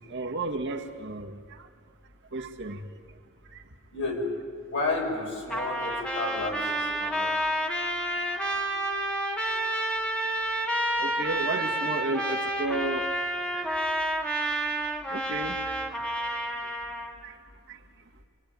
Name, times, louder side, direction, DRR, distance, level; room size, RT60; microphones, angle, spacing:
voice 1, 0.1-1.7 2.3-2.9 3.5-3.6 7.3-7.4 11.0-13.1 13.5-13.9 15.1-15.8 17.2-17.4 17.7-17.8, right 2 dB, 55° right, 2 dB, 1.9 m, -33 dB
voice 2, 3.9-4.4 4.6-7.3, left 2 dB, 55° left, 0 dB, 7.2 m, -31 dB
Trumpet, 5.5-17.1, right 1 dB, 5° left, 2.2 m, -29 dB
25.0 x 24.0 x 9.5 m, 2.1 s
head